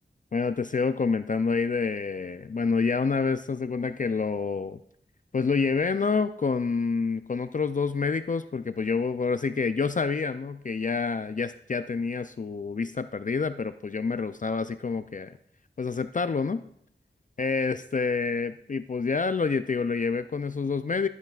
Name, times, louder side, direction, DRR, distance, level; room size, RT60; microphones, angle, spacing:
voice 1, 0.3-4.8 5.3-15.4 15.8-16.6 17.4-21.1, left 4 dB, 45° left, 11 dB, 0.4 m, -27 dB
12.5 x 8.0 x 2.4 m, 0.70 s
wide cardioid pair, 50°, 19 cm